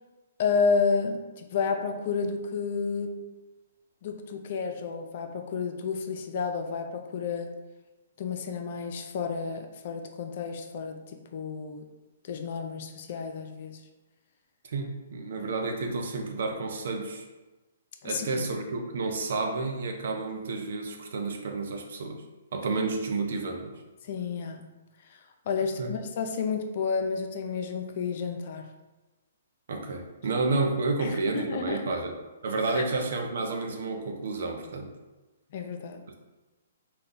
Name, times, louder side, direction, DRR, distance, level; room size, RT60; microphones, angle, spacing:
voice 1, 0.4-3.2 4.0-7.5 8.2-11.9 12.2-13.8 18.0-18.5 24.0-24.7 25.5-28.7 31.0-32.0 32.7-32.8 35.5-36.0, left 5 dB, 55° left, 5 dB, 0.5 m, -31 dB
voice 2, 14.6-17.3 18.0-22.2 22.5-23.8 25.8-25.9 29.7-32.1 32.4-34.9, right 3 dB, 65° right, 3 dB, 0.6 m, -30 dB
4.0 x 2.2 x 3.8 m, 1.1 s
hypercardioid pair, 125°, 0 cm